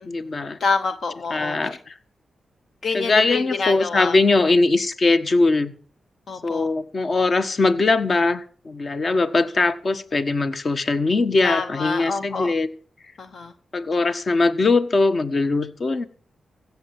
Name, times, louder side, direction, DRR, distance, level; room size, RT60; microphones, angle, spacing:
voice 1, 0.1-0.6 1.3-1.9 2.9-5.7 6.4-12.7 13.7-16.1, left 3 dB, 50° left, 1.3 m, -21 dB
voice 2, 0.6-1.6 2.8-4.2 6.3-6.7 11.4-12.5 13.2-13.5, left 4 dB, 65° left, 0.9 m, -26 dB
16.0 x 7.4 x 7.2 m
cardioid pair, 60°, 0 cm